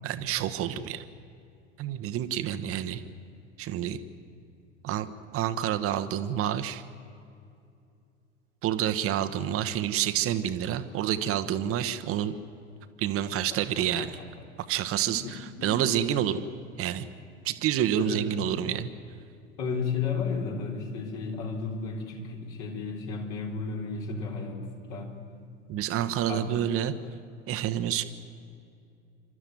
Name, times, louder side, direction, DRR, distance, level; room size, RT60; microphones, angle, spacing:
voice 1, 0.0-1.0 1.8-3.0 3.6-4.0 4.8-5.1 5.3-6.8 8.6-12.4 13.0-14.1 14.6-16.4 16.8-17.1 17.4-18.9 25.7-26.9 27.5-28.0, right 10 dB, 40° right, 9 dB, 1.2 m, -28 dB
voice 2, 13.3-14.1 15.1-16.1 18.0-18.3 19.6-25.2 26.3-26.6, left 4 dB, 50° left, 1 dB, 4.2 m, -34 dB
28.0 x 12.5 x 9.3 m, 2.5 s
figure-of-eight pair, 75°, 35 cm